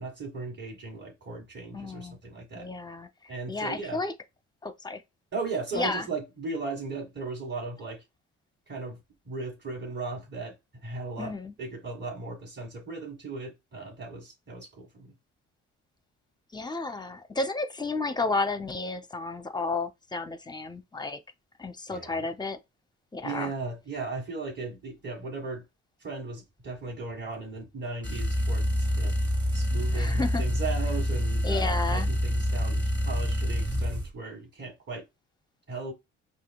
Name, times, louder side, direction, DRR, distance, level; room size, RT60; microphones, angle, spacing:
voice 1, 0.0-2.7 3.3-4.0 5.3-8.0 8.7-9.0 9.2-10.5 10.8-11.3 11.6-15.1 21.9-22.3 23.2-25.6 26.0-29.2 29.5-35.0 35.7-35.9, right 3 dB, 35° right, 1.7 m, -37 dB
voice 2, 1.7-2.2 2.5-4.1 4.6-5.0 5.7-6.1 11.2-11.5 16.5-21.2 21.6-22.6 23.1-23.5 29.9-30.4 31.4-32.1, left 3 dB, 15° left, 0.6 m, -32 dB
sound 1, 28.0-34.1, equal, 15° right, 1.6 m, -27 dB
5.0 x 2.8 x 2.2 m
cardioid pair, 90°, 30 cm